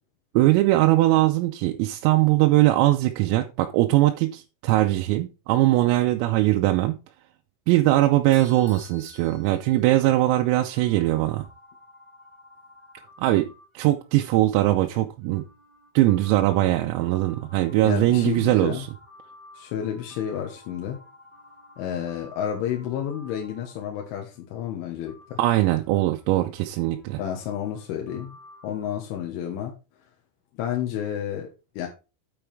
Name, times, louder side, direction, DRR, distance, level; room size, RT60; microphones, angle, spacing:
voice 1, 0.3-6.9 7.7-11.5 13.2-13.5 13.7-15.4 15.9-18.9 25.4-27.2, right 16 dB, 90° right, 3.4 m, -21 dB
Bell / Doorbell, 8.3-10.4, left 6 dB, 55° left, 5.2 m, -51 dB
sound 1, 10.6-24.4 25.1-28.9, left 2 dB, 25° right, 1.1 m, -52 dB
voice 2, 17.8-18.9 19.6-21.0 21.8-25.4 27.2-28.4 28.6-29.7 30.6-31.5 31.8-31.9, left 9 dB, 75° left, 3.6 m, -30 dB
9.1 x 7.8 x 3.5 m
omnidirectional pair, 5.9 m